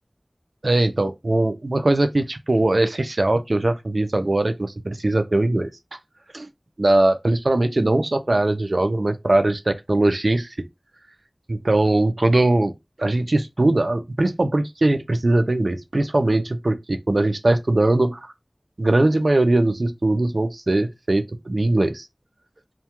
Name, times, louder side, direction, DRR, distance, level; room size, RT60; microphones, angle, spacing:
voice 1, 0.6-5.7 6.3-6.5 6.8-10.5 11.5-12.7 13.0-18.3 18.8-22.1, right 2 dB, 80° right, 0.4 m, -20 dB
2.3 x 2.1 x 2.8 m
wide cardioid pair, 40°, 0 cm